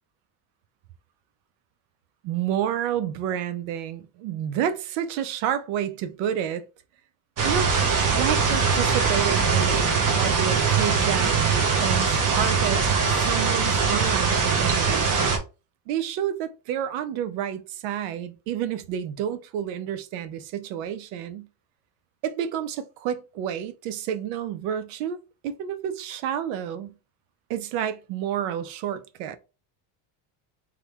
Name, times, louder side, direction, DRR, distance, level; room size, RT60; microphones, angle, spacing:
voice 1, 2.2-6.6 7.4-7.7 8.1-15.1 15.9-21.5 22.2-25.2 25.4-26.9 27.5-29.4, right 9 dB, 75° right, 0.7 m, -30 dB
sound 1, 7.4-15.4, right 5 dB, 40° right, 1.1 m, -22 dB
3.3 x 2.3 x 3.3 m
cardioid pair, 120°, 49 cm